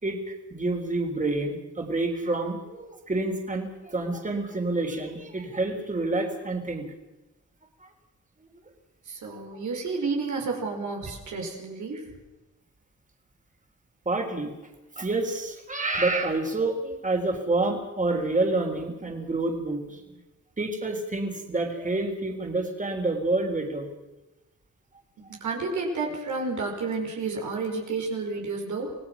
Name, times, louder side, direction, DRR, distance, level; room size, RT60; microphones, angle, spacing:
voice 1, 0.0-6.9 7.8-7.9 9.5-9.6 14.1-14.5 15.0-20.2 20.6-23.9, right 2 dB, 25° right, 2 dB, 3.7 m, -28 dB
voice 2, 9.1-12.1 25.2-29.0, right 4 dB, 85° right, 1 dB, 4.9 m, -31 dB
26.5 x 18.0 x 6.1 m, 1.0 s
cardioid pair, 90°, 29 cm